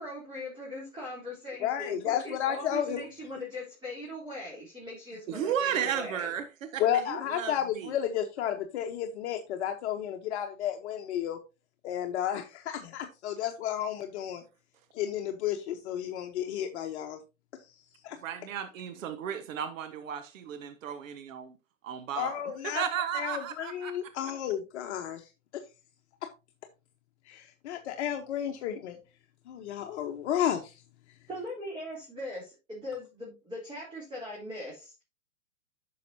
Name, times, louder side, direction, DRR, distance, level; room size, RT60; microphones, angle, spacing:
voice 1, 0.0-6.3 31.3-34.9, left 1 dB, 10° right, 3.5 m, -40 dB
voice 2, 1.6-3.0 6.8-11.4 11.8-14.4 15.0-17.2 18.0-18.2 22.2-22.8 23.1-25.2 27.3-29.0 29.5-30.7, left 10 dB, 55° left, 1.1 m, -32 dB
voice 3, 5.3-7.9 18.2-21.6 21.8-23.9, right 9 dB, 65° right, 1.2 m, -34 dB
10.5 x 6.5 x 2.7 m
hypercardioid pair, 125°, 42 cm